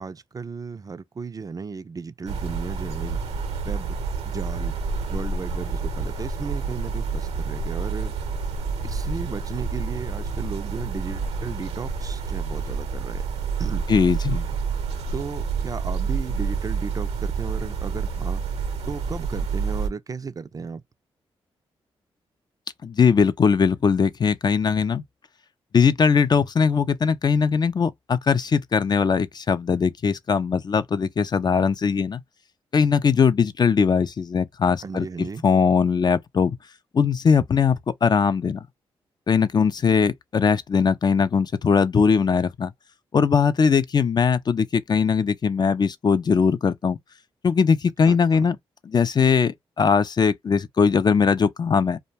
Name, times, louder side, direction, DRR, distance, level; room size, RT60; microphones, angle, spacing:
voice 1, 0.0-4.0 4.2-4.7 5.1-8.1 8.8-13.2 13.6-13.8 15.1-18.4 18.9-20.8 34.8-35.4 48.0-48.5, right 5 dB, 35° right, 0.3 m, -35 dB
sound 1, 2.3-19.9, right 5 dB, 80° right, 0.7 m, -28 dB
voice 2, 13.9-14.4 22.8-25.0 25.7-32.2 32.7-35.1 35.4-36.6 36.9-38.6 39.3-42.7 43.1-47.0 47.4-48.6 48.9-52.0, left 6 dB, 40° left, 0.3 m, -20 dB
2.2 x 2.1 x 3.2 m
supercardioid pair, 50°, 11 cm